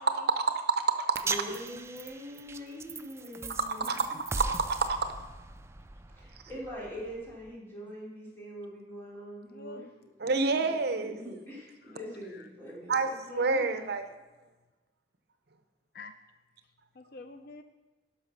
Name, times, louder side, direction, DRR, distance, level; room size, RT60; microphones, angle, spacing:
voice 1, 0.1-1.6 3.9-5.1 10.2-11.1 12.9-14.0, right 4 dB, 65° right, 8 dB, 0.7 m, -28 dB
sound 1, 1.1-7.5, right 3 dB, 15° right, 0.4 m, -40 dB
voice 2, 1.2-4.0 6.2-9.9 10.9-13.1, equal, 15° left, -7 dB, 3.9 m, -43 dB
voice 3, 9.5-9.9 11.9-12.0 12.3-12.5 13.1-13.9 15.9-16.1 17.0-17.6, left 3 dB, 60° left, 9 dB, 0.5 m, -46 dB
11.0 x 6.0 x 5.9 m, 1.2 s
head